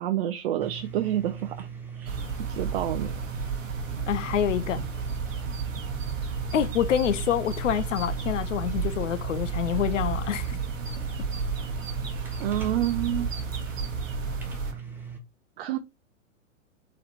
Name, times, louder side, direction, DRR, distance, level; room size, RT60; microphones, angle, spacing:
voice 1, 0.0-1.7 1.9-2.2 2.5-3.1 12.4-13.3 15.6-15.8, right 12 dB, 50° right, 0.6 m, -28 dB
sound 1, 0.6-15.2, right 7 dB, 5° right, 0.6 m, -40 dB
sound 2, 2.1-14.7, right 5 dB, 75° right, 1.0 m, -32 dB
voice 2, 4.1-4.8 6.5-10.6, left 10 dB, 70° left, 0.5 m, -27 dB
4.0 x 3.1 x 4.2 m
figure-of-eight pair, 110°, 39 cm